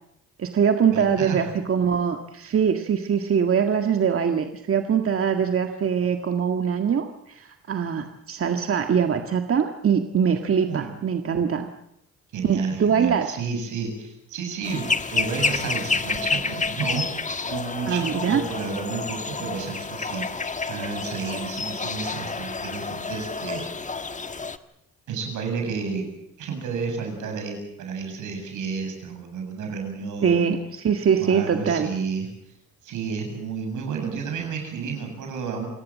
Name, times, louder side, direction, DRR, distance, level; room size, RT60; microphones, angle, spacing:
voice 1, 0.4-11.7 12.4-13.4 17.9-18.4 30.2-31.9, right 7 dB, 45° right, 5 dB, 1.8 m, -23 dB
voice 2, 0.9-1.5 10.6-10.9 12.3-17.0 17.4-20.3 20.7-23.7 25.1-26.1 26.4-30.5 31.2-32.3 32.8-35.7, right 5 dB, 80° right, 4 dB, 7.7 m, -31 dB
sound 1, 14.6-24.6, left 4 dB, 25° left, 1.4 m, -29 dB
28.0 x 17.5 x 7.5 m, 0.78 s
cardioid pair, 90°, 30 cm